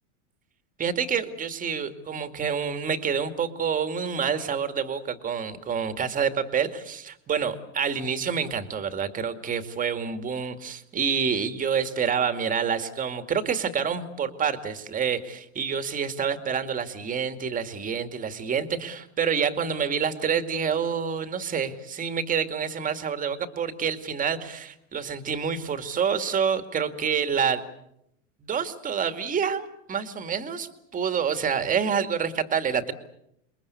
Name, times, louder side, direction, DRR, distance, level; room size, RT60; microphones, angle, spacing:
voice 1, 0.8-27.6 28.4-32.9, right 7 dB, 20° right, 8 dB, 2.3 m, -27 dB
28.0 x 22.5 x 8.3 m, 0.80 s
supercardioid pair, 135°, 39 cm